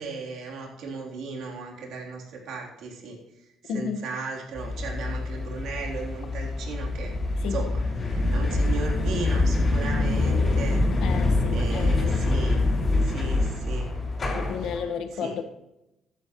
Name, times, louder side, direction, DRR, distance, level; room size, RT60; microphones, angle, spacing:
voice 1, 0.0-3.2 3.7-7.1 7.5-7.7 8.0-10.8 11.5-12.6 13.0-13.9 15.2-15.3, right 4 dB, 70° right, -1 dB, 3.6 m, -36 dB
voice 2, 3.7-4.0 7.4-7.6 11.0-12.2 14.3-15.4, left 6 dB, 75° left, 5 dB, 1.6 m, -32 dB
sound 1, 4.6-14.8, left 2 dB, 30° left, 5.4 m, -25 dB
15.0 x 11.5 x 3.2 m, 0.91 s
cardioid pair, 130°, 0 cm